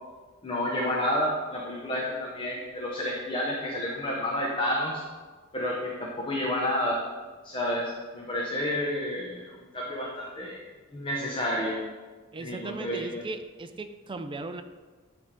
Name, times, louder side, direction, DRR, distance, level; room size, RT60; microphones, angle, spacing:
voice 1, 0.4-5.0 5.5-7.0 7.4-9.4 9.7-10.6 10.9-11.8 12.4-13.2, left 1 dB, 25° left, -3 dB, 0.9 m, -30 dB
voice 2, 12.3-14.6, right 3 dB, 25° right, 8 dB, 0.4 m, -37 dB
9.9 x 3.4 x 5.1 m, 1.4 s
head